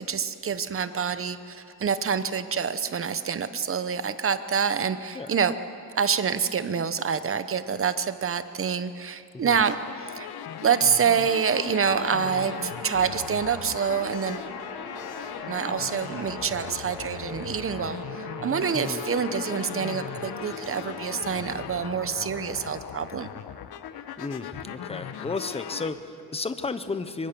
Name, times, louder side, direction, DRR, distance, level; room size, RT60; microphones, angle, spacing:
voice 1, 0.0-5.5 6.0-10.3 10.6-14.5 15.5-23.3, right 6 dB, 35° right, 12 dB, 0.9 m, -27 dB
sound 1, 9.5-25.9, left 9 dB, 90° left, 1.1 m, -38 dB
sound 2, 11.8-22.2, right 1 dB, 5° right, 3.0 m, -42 dB
voice 2, 24.2-27.3, left 3 dB, 15° left, 11 dB, 0.8 m, -33 dB
24.5 x 23.0 x 6.9 m, 2.5 s
wide cardioid pair, 170°, 37 cm